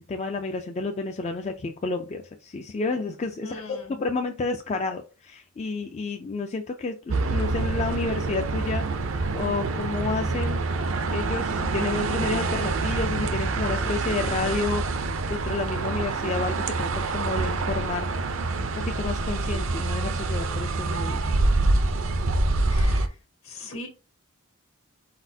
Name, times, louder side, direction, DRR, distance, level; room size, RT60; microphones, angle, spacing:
voice 1, 0.0-8.8 9.3-10.6 11.1-14.8 15.3-18.1 18.9-21.2 21.6-21.7, left 3 dB, 30° left, 0.3 m, -30 dB
voice 2, 3.4-3.9 22.7-23.2 23.4-23.9, left 2 dB, 70° left, 1.5 m, -40 dB
sound 1, 7.1-23.1, right 3 dB, 65° right, 0.5 m, -26 dB
4.3 x 4.1 x 2.7 m
head